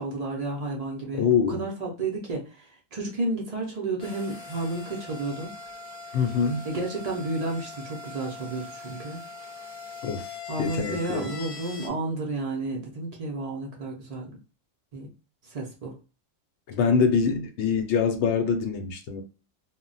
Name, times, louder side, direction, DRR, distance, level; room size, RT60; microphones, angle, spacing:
voice 1, 0.0-5.5 6.6-9.3 10.5-14.3 14.9-15.1 15.5-16.0, right 2 dB, 55° right, 0.4 m, -32 dB
voice 2, 1.1-1.6 6.1-6.6 10.0-10.3 10.6-11.3 16.7-19.2, left 6 dB, 65° left, 0.8 m, -24 dB
sound 1, 4.0-11.9, left 3 dB, 45° left, 0.5 m, -41 dB
2.1 x 2.1 x 3.8 m
omnidirectional pair, 1.4 m